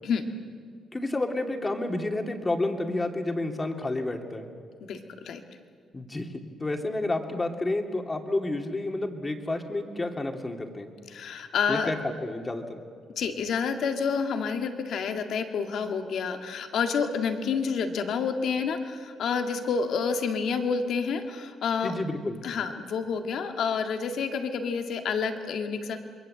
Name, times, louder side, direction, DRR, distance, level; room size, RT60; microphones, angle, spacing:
voice 1, 0.9-4.5 5.9-10.9 11.7-12.0 12.2-12.8 21.8-22.4, left 2 dB, 20° left, 4 dB, 2.5 m, -30 dB
voice 2, 4.9-5.4 11.1-11.9 13.2-22.0 22.4-26.0, left 6 dB, 70° left, 5 dB, 2.0 m, -29 dB
27.0 x 22.0 x 7.8 m, 2.1 s
cardioid pair, 90°, 0 cm